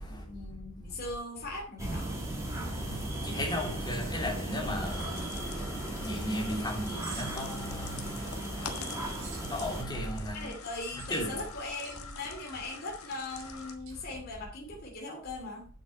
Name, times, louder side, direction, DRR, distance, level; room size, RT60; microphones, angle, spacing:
voice 1, 0.1-2.2 10.3-15.7, left 2 dB, 45° left, 2.5 m, -40 dB
sound 1, 1.8-9.8, right 1 dB, 15° right, 2.1 m, -37 dB
voice 2, 2.5-10.5 11.1-11.4 14.0-14.1, equal, 20° left, 2.9 m, -36 dB
sound 2, 3.9-5.4 7.0-7.7 9.1-9.7 11.0-12.0 13.3-13.5 13.8-14.0, right 5 dB, 70° right, 4.1 m, -49 dB
sound 3, 4.8-13.8, left 5 dB, 80° left, 1.5 m, -46 dB
9.2 x 7.6 x 4.3 m
head